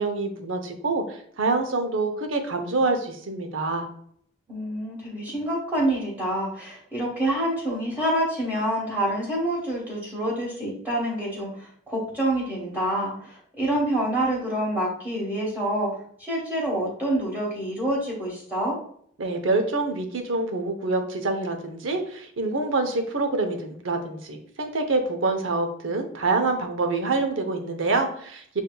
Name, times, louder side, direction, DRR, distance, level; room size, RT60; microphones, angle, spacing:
voice 1, 0.0-3.9 19.2-28.6, right 3 dB, 75° right, 5 dB, 0.7 m, -26 dB
voice 2, 4.5-15.9 16.2-18.8, right 1 dB, 10° right, -5 dB, 1.1 m, -27 dB
6.7 x 2.6 x 2.2 m, 0.62 s
head